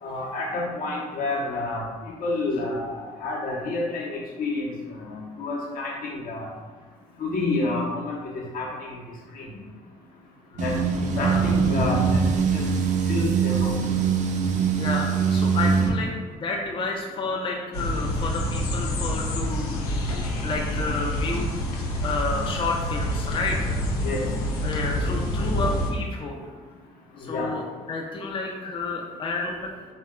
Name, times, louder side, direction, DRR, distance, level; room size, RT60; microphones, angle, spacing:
voice 1, 0.0-1.8 2.2-2.9 3.2-4.7 5.0-6.5 7.2-9.0 9.3-9.5 10.6-10.7 11.2-12.2 12.5-12.6 13.1-13.7 24.0-24.2 27.2-27.5, left 2 dB, 50° left, -3 dB, 0.8 m, -29 dB
sound 1, 10.6-15.9, right 6 dB, 40° right, 0.5 m, -22 dB
voice 2, 11.1-11.5 14.8-19.8 20.4-21.6 22.0-23.8 24.6-26.4 27.2-29.7, left 3 dB, 25° left, 0 dB, 0.5 m, -30 dB
sound 2, 17.7-25.9, equal, 75° left, 0.5 m, -27 dB
3.4 x 2.2 x 3.6 m, 1.5 s
figure-of-eight pair, 50°, 19 cm